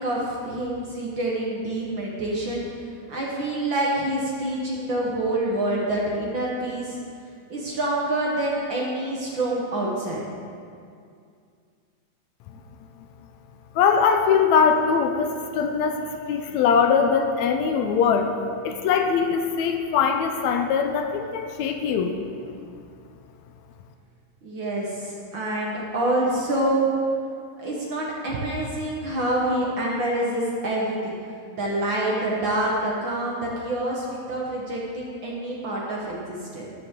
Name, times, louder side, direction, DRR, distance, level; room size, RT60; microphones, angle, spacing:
voice 1, 0.0-2.6 3.1-7.0 7.5-10.2 24.4-26.9 27.6-31.2 31.5-36.7, right 1 dB, 50° right, -4 dB, 1.6 m, -26 dB
voice 2, 13.8-16.0 16.3-18.3 18.6-22.1, left 6 dB, 80° left, 5 dB, 1.8 m, -21 dB
11.5 x 10.5 x 3.7 m, 2.3 s
omnidirectional pair, 3.4 m